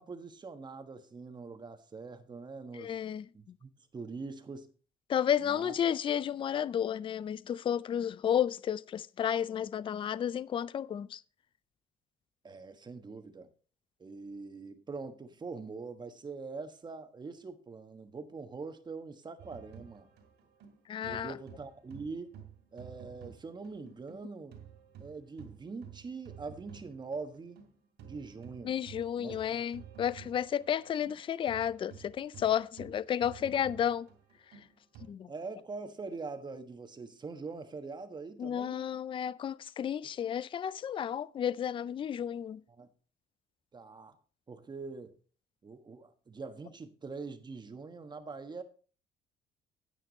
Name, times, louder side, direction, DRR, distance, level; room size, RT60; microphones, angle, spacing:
voice 1, 0.0-3.0 3.3-4.7 5.4-5.7 12.4-13.5 14.0-20.1 21.0-22.4 22.7-24.6 25.0-27.6 28.0-28.8 29.2-29.4 35.3-38.9 42.8-42.9 43.7-44.2 44.5-45.2 45.6-48.6, right 4 dB, 25° right, 1.4 m, -43 dB
voice 2, 2.7-3.3 5.1-11.2 20.9-21.4 28.6-34.1 35.1-35.3 38.4-42.6, left 9 dB, 30° left, 0.4 m, -32 dB
sound 1, 19.4-24.2 24.5-35.1, right 8 dB, 80° right, 3.4 m, -52 dB
9.8 x 9.0 x 4.1 m
cardioid pair, 110°, 17 cm